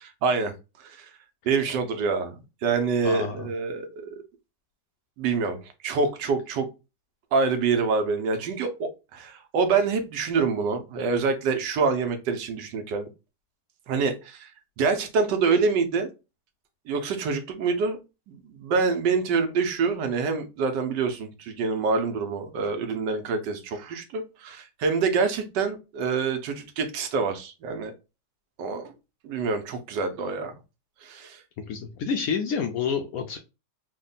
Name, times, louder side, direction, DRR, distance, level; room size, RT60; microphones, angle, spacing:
voice 1, 0.2-0.5 0.8-1.1 1.5-4.1 5.2-6.7 7.3-13.1 13.9-14.5 14.8-16.1 16.9-18.0 18.3-27.9 28.6-28.9 29.2-30.5 31.0-31.4, right 4 dB, 80° right, 1.3 m, -26 dB
voice 2, 3.0-3.5 31.7-33.4, left 6 dB, 70° left, 0.8 m, -28 dB
3.6 x 2.2 x 3.8 m
omnidirectional pair, 1.9 m